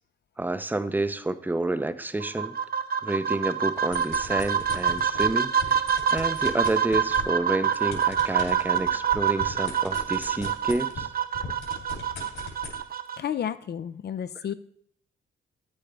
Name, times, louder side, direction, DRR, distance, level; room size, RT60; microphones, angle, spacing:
voice 1, 0.4-2.6 3.0-5.8 6.1-11.1, right 2 dB, 10° right, 12 dB, 0.6 m, -29 dB
sound 1, 2.2-13.2, right 8 dB, 50° right, 0.7 m, -26 dB
sound 2, 3.8-5.3 5.6-11.1 11.3-12.8, left 5 dB, 75° left, 3.0 m, -38 dB
voice 2, 13.2-14.5, left 9 dB, 55° left, 12 dB, 0.5 m, -31 dB
9.1 x 8.7 x 3.4 m, 0.67 s
cardioid pair, 85°, 21 cm